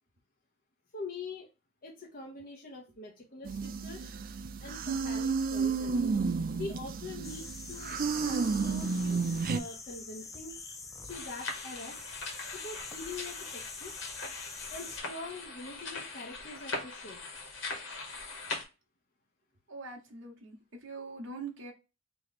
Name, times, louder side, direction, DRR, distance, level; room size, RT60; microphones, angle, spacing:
voice 1, 0.9-1.5 1.8-4.1 4.6-6.1 6.5-10.6 11.0-12.0 12.5-13.9 14.7-17.2, left 3 dB, 45° left, 0.9 m, -44 dB
sound 1, 3.4-9.6, right 4 dB, 45° right, 0.4 m, -32 dB
sound 2, 7.2-15.0, left 4 dB, 15° left, 0.5 m, -45 dB
sound 3, 11.1-18.6, left 3 dB, 65° left, 1.3 m, -41 dB
voice 2, 19.7-20.6 20.8-21.7, right 3 dB, 60° right, 1.0 m, -42 dB
3.1 x 3.0 x 4.0 m
head